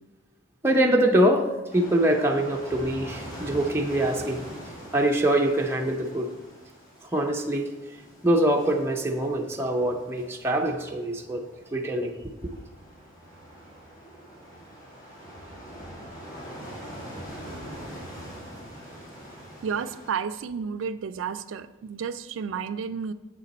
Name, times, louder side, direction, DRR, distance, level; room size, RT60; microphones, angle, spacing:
voice 1, 0.6-1.5 1.7-4.4 4.9-6.3 7.1-7.7 8.2-11.4 11.7-12.3, right 1 dB, 15° right, 1 dB, 0.5 m, -24 dB
sound 1, 1.7-20.1, equal, 45° left, 2.4 m, -43 dB
voice 2, 19.6-23.1, right 6 dB, 85° right, 11 dB, 0.3 m, -31 dB
7.4 x 6.6 x 4.1 m, 1.1 s
head